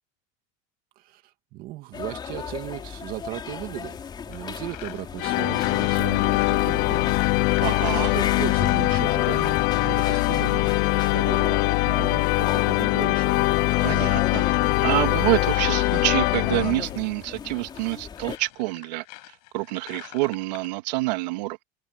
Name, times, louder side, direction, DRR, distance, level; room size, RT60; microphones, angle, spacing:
voice 1, 1.0-7.3 8.0-13.5, right 16 dB, 45° right, 2.0 m, -37 dB
sound 1, 1.9-18.4, left 7 dB, 20° left, 4.3 m, -36 dB
sound 2, 4.3-14.2 16.3-20.7, left 26 dB, 70° left, 7.7 m, -44 dB
sound 3, 5.2-17.1, left 21 dB, 45° left, 0.8 m, -22 dB
voice 2, 7.6-8.1 13.8-21.6, right 21 dB, 90° right, 2.5 m, -27 dB
cardioid pair, 165°, 21 cm